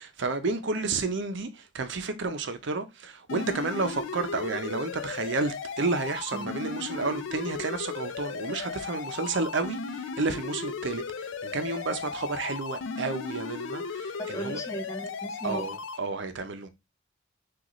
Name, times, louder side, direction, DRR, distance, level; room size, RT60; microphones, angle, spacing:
voice 1, 0.0-14.6 15.4-16.7, right 3 dB, 65° right, 0.7 m, -31 dB
sound 1, 3.3-16.0, left 5 dB, 85° left, 0.5 m, -36 dB
voice 2, 14.2-15.6, right 1 dB, 15° left, 0.8 m, -36 dB
6.2 x 2.5 x 3.0 m
head